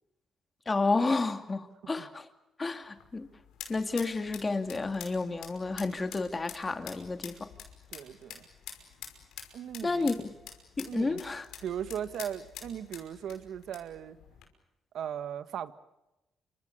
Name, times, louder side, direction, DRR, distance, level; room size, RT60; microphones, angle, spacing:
voice 1, 0.7-2.3 2.6-3.3 3.7-7.5 9.8-10.1 10.8-11.5, left 3 dB, 25° left, 8 dB, 2.5 m, -31 dB
sound 1, 2.8-14.5, left 8 dB, 85° left, 5.6 m, -48 dB
voice 2, 7.9-8.5 9.5-10.1 10.8-11.2 11.6-14.2 14.9-15.7, right 9 dB, 70° right, 12 dB, 1.5 m, -38 dB
28.5 x 26.5 x 6.7 m, 0.95 s
cardioid pair, 90°, 0 cm